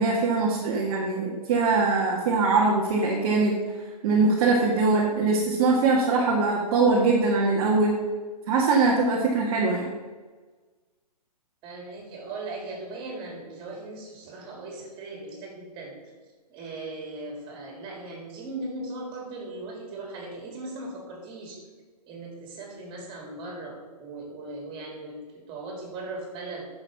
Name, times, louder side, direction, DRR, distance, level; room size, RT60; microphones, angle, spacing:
voice 1, 0.0-3.6 4.0-8.0 8.5-9.9, right 3 dB, 40° right, -2 dB, 1.9 m, -22 dB
voice 2, 11.6-15.9 16.5-21.6 22.1-26.7, right 2 dB, 25° right, 0 dB, 3.7 m, -38 dB
10.5 x 6.8 x 5.8 m, 1.4 s
hypercardioid pair, 130°, 20 cm